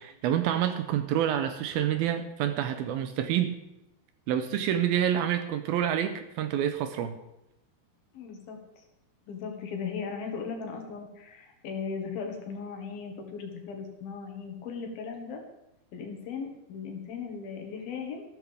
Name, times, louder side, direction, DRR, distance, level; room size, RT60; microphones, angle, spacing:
voice 1, 0.0-3.6 4.3-7.2, right 10 dB, 75° right, 8 dB, 2.4 m, -28 dB
voice 2, 8.1-8.6 9.3-15.4 15.9-18.2, left 5 dB, 65° left, 3 dB, 3.3 m, -37 dB
14.0 x 13.5 x 3.5 m, 0.89 s
omnidirectional pair, 4.7 m